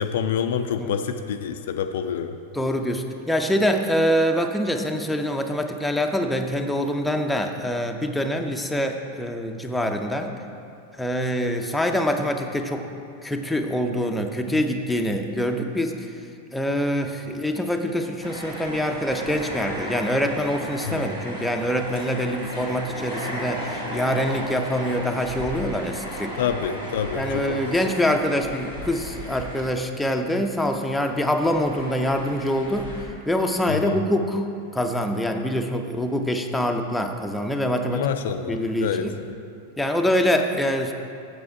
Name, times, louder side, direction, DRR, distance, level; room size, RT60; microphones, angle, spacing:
voice 1, 0.0-2.4 20.8-21.1 26.4-27.6 33.7-34.0 37.9-39.4, left 7 dB, 55° left, 7 dB, 0.4 m, -27 dB
voice 2, 2.5-10.3 11.0-12.9 13.2-16.0 16.5-26.4 27.2-32.9 33.3-34.4 34.7-38.1 38.5-39.1 39.8-40.9, equal, 5° left, 4 dB, 0.6 m, -25 dB
sound 1, 18.2-30.1 30.4-33.0, right 1 dB, 70° right, 2.3 m, -35 dB
8.4 x 6.8 x 4.6 m, 2.5 s
figure-of-eight pair, 90°, 0 cm